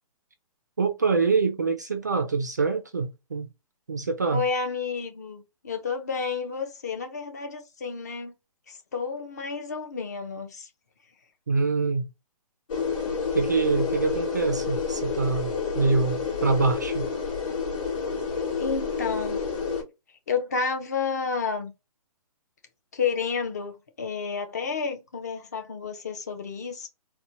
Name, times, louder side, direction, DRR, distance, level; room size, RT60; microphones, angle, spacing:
voice 1, 0.8-3.5 3.9-4.4 11.5-12.1 13.3-17.1, right 4 dB, 30° right, 0.3 m, -25 dB
voice 2, 4.3-8.3 8.7-10.7 18.6-19.5 20.3-21.7 22.9-26.9, left 5 dB, 25° left, 0.5 m, -30 dB
sound 1, 12.7-19.8, left 5 dB, 60° left, 2.2 m, -29 dB
4.1 x 2.1 x 2.7 m
hypercardioid pair, 175°, 19 cm